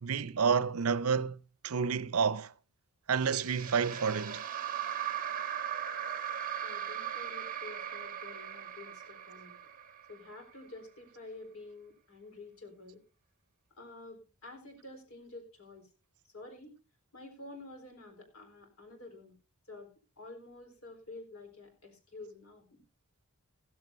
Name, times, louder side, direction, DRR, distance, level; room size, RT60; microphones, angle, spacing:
voice 1, 0.0-1.4 1.6-2.5 3.1-4.4, right 6 dB, 85° right, 0.6 m, -29 dB
sound 1, 3.2-10.5, right 9 dB, 40° right, 1.5 m, -38 dB
voice 2, 6.6-9.6 10.1-13.0 13.8-15.9 16.2-16.7 17.1-19.3 19.7-19.9 20.2-22.8, left 2 dB, 70° left, 4.2 m, -49 dB
15.5 x 14.0 x 2.7 m
head